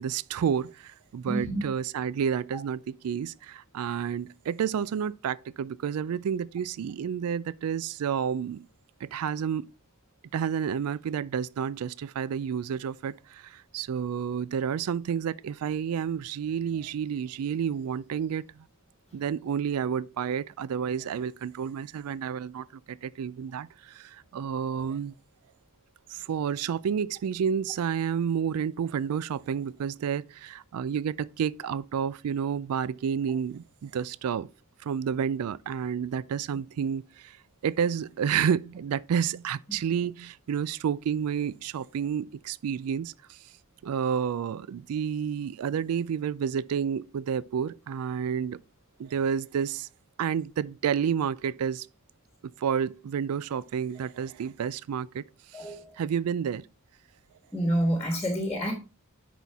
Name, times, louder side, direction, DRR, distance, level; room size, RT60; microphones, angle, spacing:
voice 1, 0.0-8.7 9.0-9.7 10.3-18.7 19.1-25.2 26.1-34.5 34.8-37.4 37.6-43.4 43.8-48.6 49.0-49.9 50.2-51.9 52.6-55.3 55.5-56.7, right 7 dB, 85° right, 0.3 m, -30 dB
voice 2, 1.3-1.6 39.7-39.8 55.5-56.0 57.5-58.7, right 1 dB, 10° left, 1.4 m, -28 dB
10.0 x 4.2 x 3.5 m
head